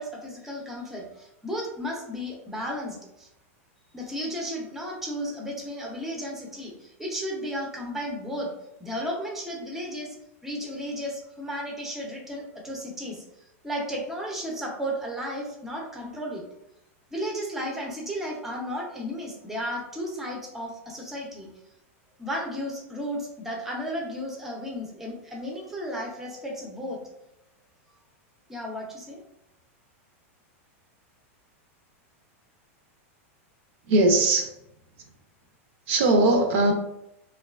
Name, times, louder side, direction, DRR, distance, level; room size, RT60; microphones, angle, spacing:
voice 1, 0.0-3.3 3.9-8.5 8.8-10.2 10.4-13.2 13.6-16.4 17.1-21.5 22.2-27.0 28.5-29.2, equal, 5° right, -1 dB, 0.5 m, -34 dB
voice 2, 33.9-34.5 35.9-36.7, right 2 dB, 55° right, 3 dB, 0.5 m, -20 dB
2.7 x 2.2 x 2.2 m, 0.82 s
supercardioid pair, 140°, 8 cm